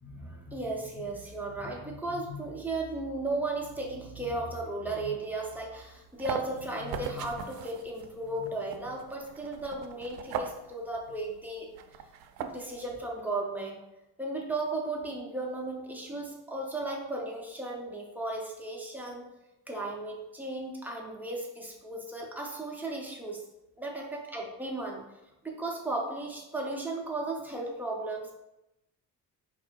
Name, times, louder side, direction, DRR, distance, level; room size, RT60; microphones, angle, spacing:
voice 1, 0.0-11.7 12.0-12.1 12.4-13.8 14.2-19.3 19.7-23.4 23.8-25.0 25.4-28.3, right 2 dB, 5° right, -2 dB, 0.5 m, -35 dB
sound 1, 5.8-12.9, right 7 dB, 80° right, 0.5 m, -40 dB
4.7 x 2.5 x 4.4 m, 0.90 s
cardioid pair, 175°, 35 cm